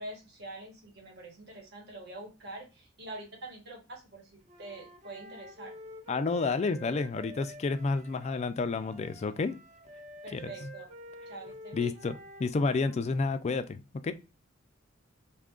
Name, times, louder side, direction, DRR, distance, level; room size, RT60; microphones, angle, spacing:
voice 1, 0.0-5.7 10.2-10.9 11.3-12.0, right 2 dB, 55° right, 1.2 m, -45 dB
Wind instrument woodwind instrument, 4.5-13.0, equal, 35° right, 0.6 m, -49 dB
voice 2, 6.1-9.5 10.3-10.7 11.7-14.1, left 4 dB, 35° left, 0.3 m, -30 dB
2.7 x 2.4 x 3.6 m
head